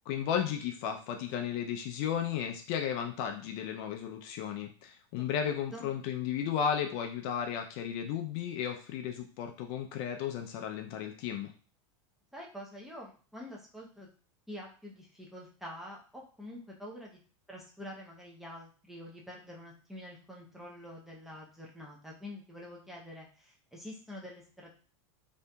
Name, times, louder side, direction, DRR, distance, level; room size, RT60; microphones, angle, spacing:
voice 1, 0.1-11.5, left 8 dB, 50° left, 4 dB, 0.4 m, -34 dB
voice 2, 12.3-14.1 14.5-17.2 17.5-24.7, left 1 dB, ahead, -3 dB, 0.6 m, -46 dB
2.7 x 2.5 x 2.2 m, 0.39 s
supercardioid pair, 140°, 17 cm